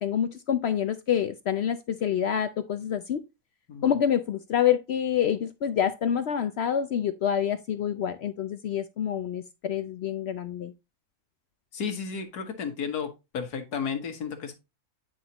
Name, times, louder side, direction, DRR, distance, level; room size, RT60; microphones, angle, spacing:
voice 1, 0.0-3.2 3.8-10.7, left 9 dB, 70° left, 0.6 m, -27 dB
voice 2, 11.7-14.6, left 6 dB, 90° left, 1.9 m, -33 dB
9.3 x 5.6 x 2.9 m
omnidirectional pair, 1.6 m